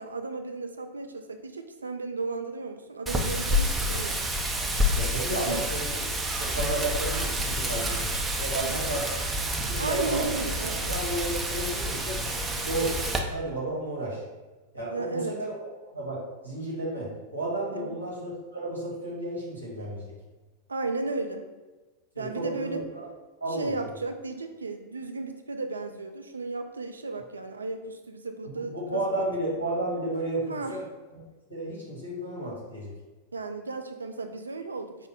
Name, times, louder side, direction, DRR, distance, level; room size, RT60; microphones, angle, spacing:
voice 1, 0.0-4.2 5.3-5.6 8.6-8.8 9.8-10.9 14.9-15.3 17.7-18.0 20.7-21.4 22.2-22.8 23.5-29.3 30.5-30.8 33.3-35.0, right 3 dB, 75° right, 6 dB, 0.3 m, -34 dB
Wind, 3.1-13.2, equal, 10° right, 0.4 m, -29 dB
voice 2, 4.9-5.9 6.4-8.1 8.4-10.3 10.8-12.2 12.6-14.2 14.7-15.6 15.9-20.1 22.1-23.0 23.4-23.7 28.4-30.8 31.5-32.9, right 1 dB, 85° left, -5 dB, 1.2 m, -32 dB
4.9 x 2.1 x 3.6 m, 1.2 s
figure-of-eight pair, 90°, 0 cm